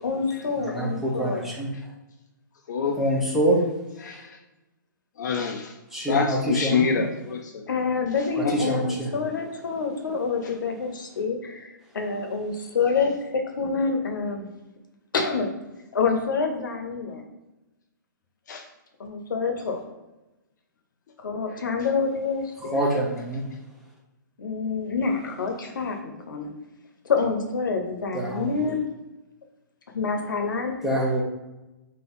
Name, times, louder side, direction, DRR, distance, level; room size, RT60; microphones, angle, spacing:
voice 1, 0.0-1.4 7.7-14.5 15.1-15.5 15.9-17.2 19.0-19.8 21.2-22.8 24.4-26.5 27.0-28.8 29.9-30.8, left 4 dB, 75° left, 4 dB, 0.9 m, -27 dB
voice 2, 0.6-1.7 2.8-3.6 5.9-6.9 8.4-9.1 22.6-23.4 28.1-28.5 30.8-31.2, right 1 dB, 5° right, -4 dB, 0.8 m, -25 dB
voice 3, 5.2-5.7 6.1-7.4 8.4-8.5 18.5-18.6, left 6 dB, 60° left, 3 dB, 0.5 m, -25 dB
3.6 x 2.8 x 3.5 m, 1.0 s
hypercardioid pair, 145°, 11 cm